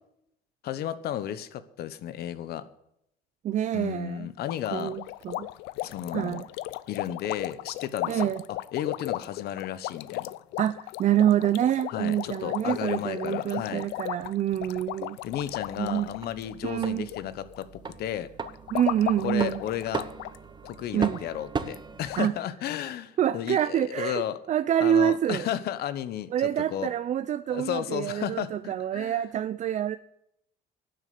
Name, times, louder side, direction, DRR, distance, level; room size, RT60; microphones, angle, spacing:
voice 1, 0.6-2.6 3.7-4.9 5.8-6.4 6.9-10.3 11.9-13.9 15.2-18.3 19.2-20.1 20.6-24.4 24.8-26.9 27.5-29.2, left 11 dB, 70° left, 13 dB, 1.1 m, -33 dB
voice 2, 3.4-4.3 4.7-5.5 6.1-6.5 8.1-8.4 10.6-15.2 15.8-16.1 16.6-17.1 18.7-19.6 20.9-21.2 22.2-22.3 23.2-25.5 26.3-30.0, right 10 dB, 45° right, 13 dB, 0.5 m, -26 dB
sound 1, 4.5-17.2 17.5-17.9 18.4-20.4 20.6-20.7 21.1-21.2 21.7-21.8 22.1-22.3, left 17 dB, 90° left, 0.5 m, -36 dB
sound 2, 15.3-22.2, right 5 dB, 25° right, 0.9 m, -38 dB
12.0 x 7.8 x 8.5 m, 0.77 s
cardioid pair, 110°, 17 cm